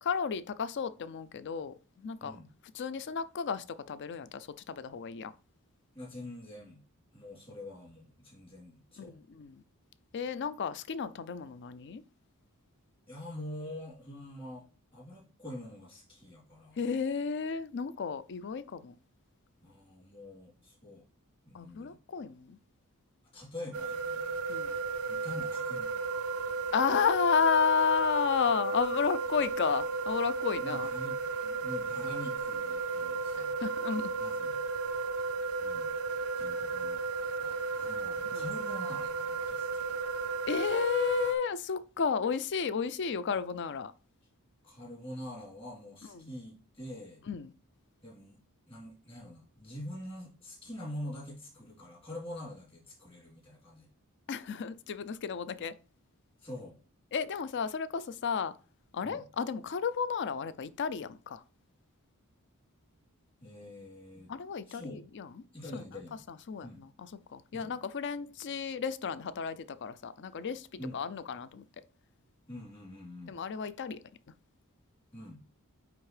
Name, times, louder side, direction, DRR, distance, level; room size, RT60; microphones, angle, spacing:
voice 1, 0.0-2.3 2.7-5.3 9.0-9.6 10.1-12.0 16.8-18.9 21.5-22.6 24.5-24.8 26.7-30.9 33.3-34.1 38.3-38.4 40.5-43.9 46.1-46.3 47.3-47.5 54.3-55.7 57.1-58.5 58.9-61.4 64.3-65.3 65.7-65.8 66.3-70.7 70.9-71.6 73.3-74.0, left 6 dB, 50° left, 0.4 m, -32 dB
voice 2, 5.9-6.8 7.1-9.2 13.1-14.7 14.9-16.9 19.6-21.0 21.4-22.0 23.3-24.4 25.1-26.1 30.6-33.6 34.1-34.6 35.6-35.9 36.4-37.0 37.4-39.9 44.6-47.2 48.0-48.4 48.7-53.9 56.4-56.8 59.0-59.2 63.4-64.3 64.7-65.0 65.5-66.2 66.6-66.8 67.5-67.7 70.8-71.0 72.5-73.3 75.1-75.4, left 1 dB, 25° left, 3.3 m, -45 dB
sound 1, 23.7-41.3, right 4 dB, 65° right, 0.4 m, -34 dB
9.2 x 3.5 x 3.3 m
head